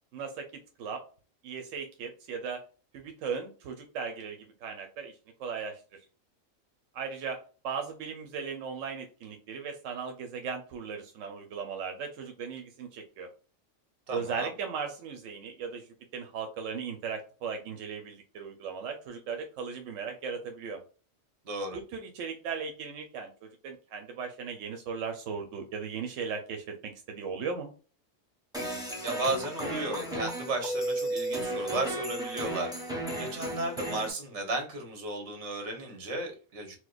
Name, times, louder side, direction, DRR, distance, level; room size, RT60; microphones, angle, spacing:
voice 1, 0.1-0.5 0.8-1.0 1.4-2.6 2.9-5.1 5.4-5.8 6.9-13.3 14.1-15.8 16.1-20.8 21.7-27.7, right 6 dB, 90° right, 4 dB, 1.0 m, -37 dB
voice 2, 14.1-14.5 21.4-21.8 29.0-32.7 33.2-36.8, right 2 dB, 65° right, 4 dB, 1.3 m, -34 dB
sound 1, 28.5-34.1, right 1 dB, 5° right, 0.7 m, -34 dB
4.4 x 2.1 x 2.3 m, 0.36 s
omnidirectional pair, 1.3 m